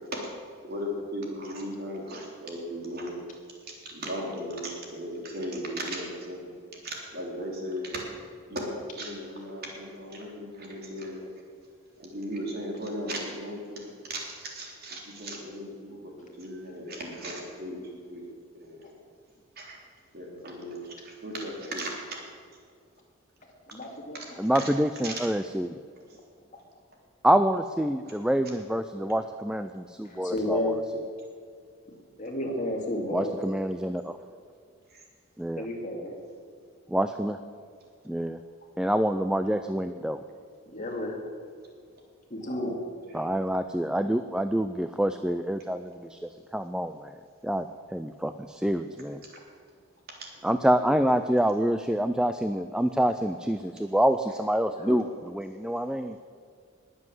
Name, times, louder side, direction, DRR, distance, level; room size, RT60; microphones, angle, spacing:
voice 1, 0.6-3.2 3.8-6.5 6.8-8.0 8.5-11.2 12.0-18.2 18.6-18.9 19.6-19.8 20.1-22.2 24.1-24.3 24.5-24.6 25.0-25.1 43.1-43.3 50.4-51.1, equal, 45° right, -1 dB, 3.4 m, -37 dB
voice 2, 23.7-24.2 30.1-30.8 32.2-33.3 35.6-36.2 40.7-41.2 42.3-42.8 54.7-55.0, left 1 dB, 35° left, 0 dB, 2.4 m, -31 dB
voice 3, 24.4-25.8 27.2-30.7 33.1-34.2 35.4-35.7 36.9-37.4 38.1-38.4 38.8-40.2 43.1-47.1 47.4-49.2 50.4-56.2, right 1 dB, 5° right, 9 dB, 0.3 m, -27 dB
20.5 x 7.8 x 7.6 m, 2.1 s
head